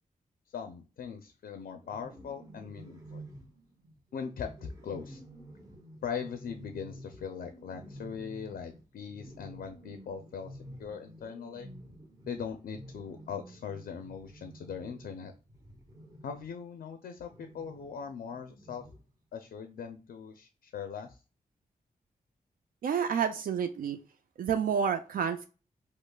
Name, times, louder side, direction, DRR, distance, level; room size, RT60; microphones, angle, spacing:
voice 1, 0.5-3.2 4.1-5.2 6.0-11.7 12.3-15.3 16.2-18.9 19.3-21.2, left 6 dB, 90° left, 7 dB, 0.5 m, -40 dB
sound 1, 1.8-16.6 17.3-19.1, right 1 dB, 25° right, 0.8 m, -51 dB
voice 2, 22.8-24.0 24.4-25.5, right 7 dB, 70° right, 7 dB, 0.4 m, -29 dB
5.3 x 2.0 x 2.2 m, 0.34 s
wide cardioid pair, 145°, 15 cm